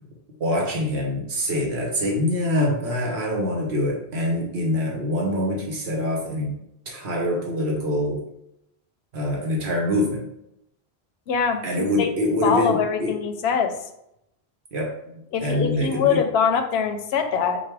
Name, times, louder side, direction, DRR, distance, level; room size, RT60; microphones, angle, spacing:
voice 1, 0.4-6.5 6.9-8.2 9.1-10.2 11.6-13.2 14.7-16.2, left 1 dB, 80° right, -1 dB, 1.2 m, -25 dB
voice 2, 11.3-12.1 12.4-13.7 15.3-17.6, left 7 dB, 80° left, 6 dB, 0.8 m, -23 dB
5.3 x 2.2 x 4.6 m, 0.79 s
omnidirectional pair, 1.1 m